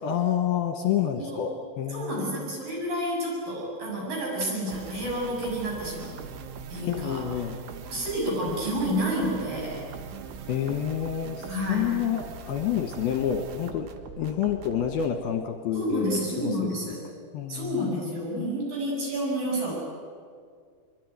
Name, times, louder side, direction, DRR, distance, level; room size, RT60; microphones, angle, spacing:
voice 1, 0.0-2.4 6.8-7.6 10.5-13.9 14.2-17.0 17.3-18.5, left 9 dB, 70° left, 6 dB, 2.7 m, -29 dB
voice 2, 1.0-1.4 1.9-6.2 6.7-7.3 7.8-9.8 11.5-12.0 15.7-17.0 17.5-19.7, equal, 45° right, -3 dB, 8.7 m, -30 dB
sound 1, 4.7-15.2, right 6 dB, 80° right, 3.9 m, -41 dB
25.0 x 23.0 x 9.5 m, 2.1 s
omnidirectional pair, 5.3 m